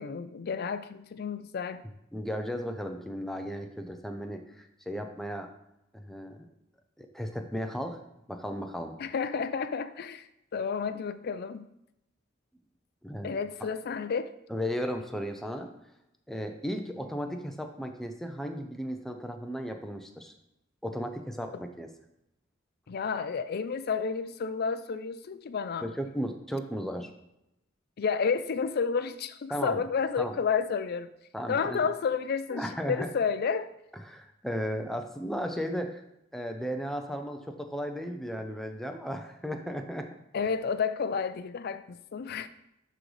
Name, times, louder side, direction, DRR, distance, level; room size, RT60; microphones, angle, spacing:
voice 1, 0.0-1.9 9.0-11.7 13.2-14.3 22.9-25.9 28.0-31.1 31.5-33.7 40.3-42.5, left 5 dB, 55° left, 13 dB, 0.4 m, -31 dB
voice 2, 2.1-5.5 5.9-6.5 7.0-8.0 8.3-8.9 13.0-13.3 14.5-15.7 16.3-20.3 20.8-21.9 25.8-27.1 29.5-29.8 30.2-30.4 31.3-31.8 32.5-33.1 34.1-36.0 36.3-40.1, equal, ahead, 4 dB, 0.6 m, -35 dB
11.0 x 3.9 x 3.3 m, 0.85 s
head